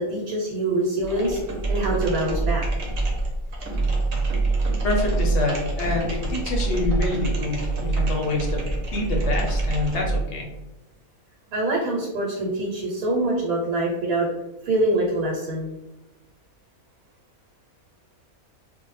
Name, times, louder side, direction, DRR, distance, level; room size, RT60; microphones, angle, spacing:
voice 1, 0.0-1.4 1.7-2.6 11.5-14.3 14.6-15.7, right 1 dB, 90° right, -2 dB, 1.1 m, -24 dB
sound 1, 1.0-10.3, right 3 dB, 65° right, 0.9 m, -25 dB
voice 2, 4.8-10.5, left 2 dB, 65° left, -1 dB, 0.8 m, -27 dB
2.4 x 2.0 x 3.1 m, 1.0 s
omnidirectional pair, 1.5 m